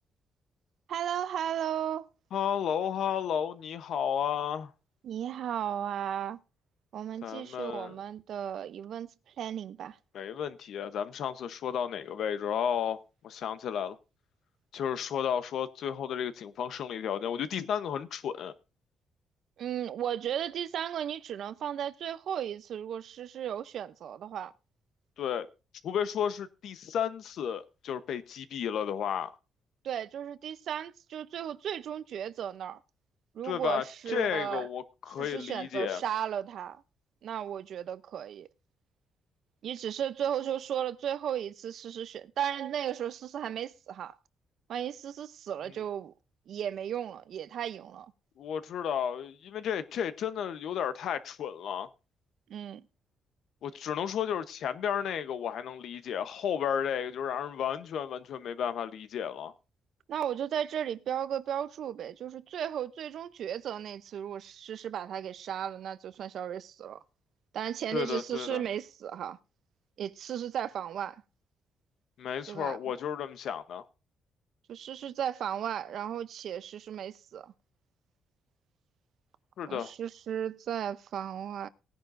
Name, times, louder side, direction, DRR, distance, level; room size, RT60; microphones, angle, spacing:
voice 1, 0.9-2.1 5.0-6.4 6.9-9.1 9.4-10.0 19.6-24.5 29.8-32.8 33.3-34.7 35.2-36.8 37.2-38.5 39.6-44.2 44.7-46.1 46.5-48.1 52.5-52.9 60.1-67.0 67.5-69.4 70.0-71.2 72.5-72.8 74.7-77.5 79.7-81.7, right 9 dB, 70° right, 0.6 m, -35 dB
voice 2, 2.3-4.7 7.2-7.9 10.1-14.0 14.7-18.5 25.2-25.5 25.8-29.3 33.4-36.0 48.4-51.9 53.6-59.5 67.9-68.6 72.2-73.8 79.6-79.9, left 8 dB, 75° left, 0.9 m, -33 dB
18.5 x 10.5 x 2.6 m
cardioid pair, 120°, 0 cm